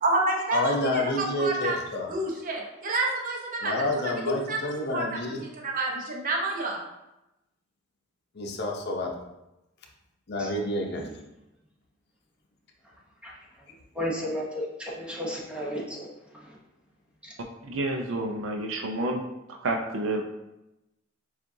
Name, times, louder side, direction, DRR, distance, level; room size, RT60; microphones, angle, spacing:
voice 1, 0.0-0.7 1.2-1.8 2.1-3.8 4.3-4.6 4.9-5.0 5.4-6.8, right 2 dB, 45° right, -1 dB, 0.7 m, -28 dB
voice 2, 0.5-2.1 3.6-5.4 8.3-9.1 10.3-11.1, left 1 dB, 55° left, 1 dB, 0.7 m, -29 dB
voice 3, 14.0-16.1, equal, 5° right, -4 dB, 0.8 m, -32 dB
voice 4, 17.6-19.2 19.6-20.2, right 2 dB, 75° right, 3 dB, 0.5 m, -29 dB
7.2 x 2.4 x 2.7 m, 0.93 s
head